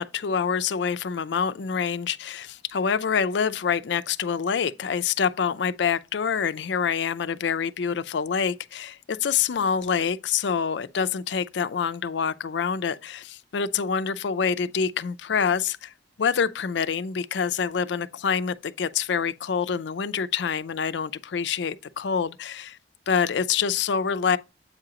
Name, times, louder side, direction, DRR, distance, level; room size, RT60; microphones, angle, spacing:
voice 1, 0.0-15.9 16.2-22.8 23.1-24.4, left 6 dB, 65° left, 0.4 m, -26 dB
8.1 x 4.8 x 2.9 m
head